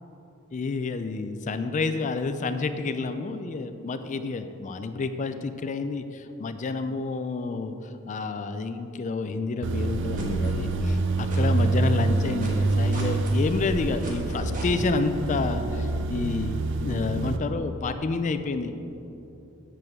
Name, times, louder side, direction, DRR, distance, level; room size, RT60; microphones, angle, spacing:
voice 1, 0.5-7.7 8.1-18.7, left 3 dB, 35° left, 9 dB, 0.4 m, -29 dB
sound 1, 9.6-11.0 11.3-14.9, right 2 dB, 40° right, 1.3 m, -40 dB
sound 2, 9.6-17.4, right 2 dB, 60° right, 0.5 m, -26 dB
7.9 x 7.5 x 3.6 m, 2.8 s
head